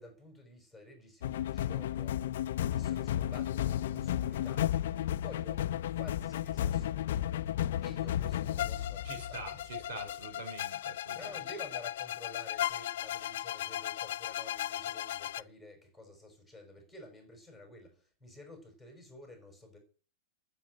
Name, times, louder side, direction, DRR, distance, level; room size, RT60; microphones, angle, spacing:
voice 1, 0.0-2.2 2.6-4.7 5.2-5.7 6.0-7.3 7.8-10.1 11.1-19.8, left 1 dB, 5° right, 2 dB, 5.2 m, -51 dB
sound 1, 1.2-15.4, left 12 dB, 65° left, 0.6 m, -34 dB
voice 2, 9.0-11.3, right 2 dB, 65° right, 6 dB, 5.3 m, -45 dB
13.5 x 7.5 x 7.8 m, 0.39 s
supercardioid pair, 165°, 0 cm